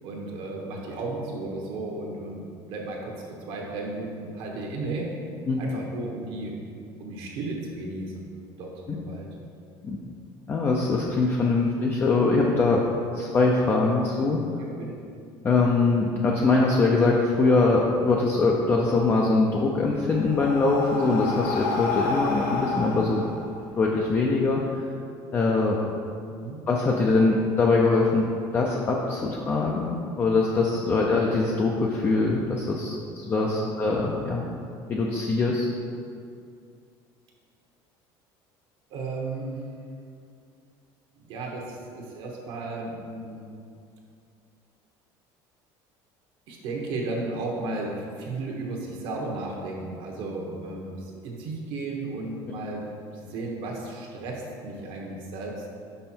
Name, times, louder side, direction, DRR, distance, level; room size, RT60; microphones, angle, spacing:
voice 1, 0.0-2.4 2.7-5.1 5.6-6.6 7.0-8.3 8.6-9.3 14.6-15.0 26.3-26.6 33.0-33.1 33.6-33.7 38.9-39.6 41.2-43.4 46.5-52.8 53.1-55.6, right 2 dB, 65° right, -1 dB, 1.1 m, -34 dB
voice 2, 10.5-12.8 13.1-14.4 15.4-23.2 23.8-24.9 25.3-25.8 26.7-28.2 28.5-34.5 34.9-35.7, left 3 dB, 25° left, -1 dB, 0.5 m, -23 dB
Breathing, 19.5-24.3, left 3 dB, 90° left, 1.0 m, -30 dB
5.5 x 5.3 x 4.4 m, 2.4 s
cardioid pair, 160°, 9 cm